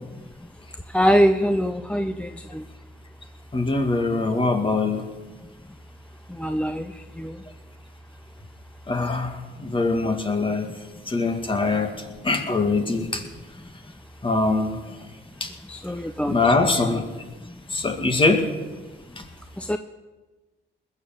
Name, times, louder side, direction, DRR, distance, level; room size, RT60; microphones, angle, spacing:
voice 1, 0.9-2.6 6.4-7.4 15.7-16.4 19.6-19.8, equal, 5° left, 8 dB, 0.6 m, -23 dB
voice 2, 3.5-5.1 8.9-9.3 9.6-10.7 11.1-11.9 12.2-13.2 14.2-14.8 15.4-15.5 16.3-17.0 17.7-18.5, left 3 dB, 25° left, 5 dB, 2.1 m, -22 dB
20.5 x 7.3 x 7.5 m, 1.2 s
cardioid pair, 90°, 20 cm